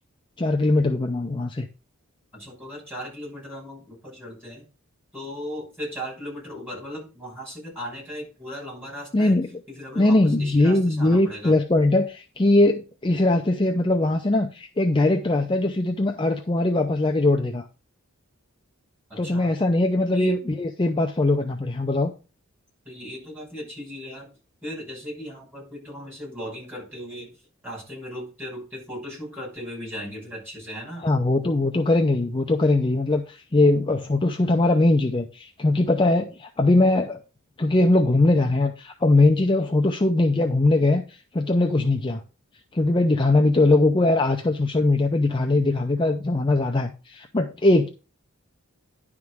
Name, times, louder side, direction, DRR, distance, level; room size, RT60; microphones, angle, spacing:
voice 1, 0.4-1.7 9.1-9.5 10.0-17.6 19.2-22.1 31.0-37.2 37.6-42.2 42.7-47.9, left 2 dB, 25° left, 3 dB, 0.6 m, -21 dB
voice 2, 2.3-4.7 5.1-9.4 9.7-11.5 19.1-19.5 20.1-20.3 22.8-24.3 24.6-27.3 27.6-31.1, equal, 10° right, -3 dB, 6.0 m, -37 dB
10.5 x 3.7 x 6.1 m, 0.33 s
head